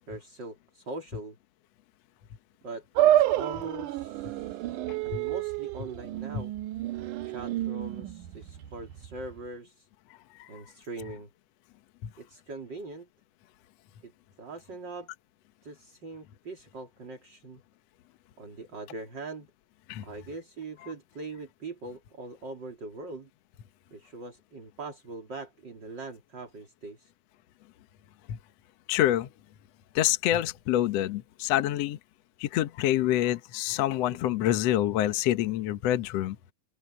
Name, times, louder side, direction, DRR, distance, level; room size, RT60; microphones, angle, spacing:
voice 1, 0.1-1.4 2.6-6.5 7.2-9.9 10.5-11.3 12.2-13.1 14.0-14.1 14.4-15.1 15.6-17.6 18.4-19.5 20.0-23.3 23.9-27.1, right 3 dB, 30° right, 3.9 m, -42 dB
sound 1, 3.0-9.4, right 13 dB, 70° right, 2.3 m, -29 dB
voice 2, 4.9-5.2 6.3-6.4 10.4-10.6 19.9-20.0 28.3-28.4 28.9-29.3 29.9-32.0 32.4-36.4, left 13 dB, 70° left, 1.6 m, -27 dB
open air
omnidirectional pair, 4.1 m